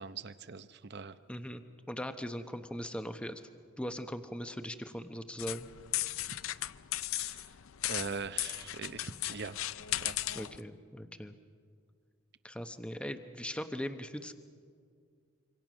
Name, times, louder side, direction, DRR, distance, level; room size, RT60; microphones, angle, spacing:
voice 1, 0.0-1.1 7.1-7.5 7.9-9.6 10.0-10.1, right 5 dB, 50° right, 12 dB, 0.8 m, -41 dB
voice 2, 1.3-3.4 3.8-5.7 10.3-11.3 12.4-14.3, equal, 5° left, 8 dB, 0.8 m, -40 dB
sound 1, 5.4-10.6, left 14 dB, 75° left, 0.5 m, -36 dB
26.0 x 25.0 x 6.2 m, 2.2 s
head